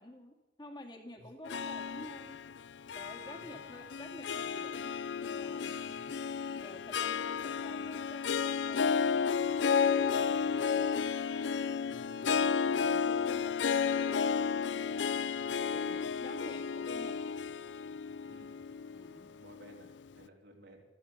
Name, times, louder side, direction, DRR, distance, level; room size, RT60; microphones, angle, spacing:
voice 1, 0.0-2.4 2.9-5.8 6.5-9.0 10.0-11.0 12.8-15.3 15.6-17.3 18.9-19.3, left 1 dB, 25° left, 3 dB, 2.0 m, -50 dB
Harp, 1.4-19.9, left 6 dB, 90° left, 0.5 m, -32 dB
voice 2, 3.3-3.6 5.7-6.1 10.1-10.5 11.9-13.5 18.3-18.5 19.4-20.8, right 1 dB, 85° right, 0 dB, 3.7 m, -58 dB
14.0 x 13.0 x 7.0 m, 0.99 s
head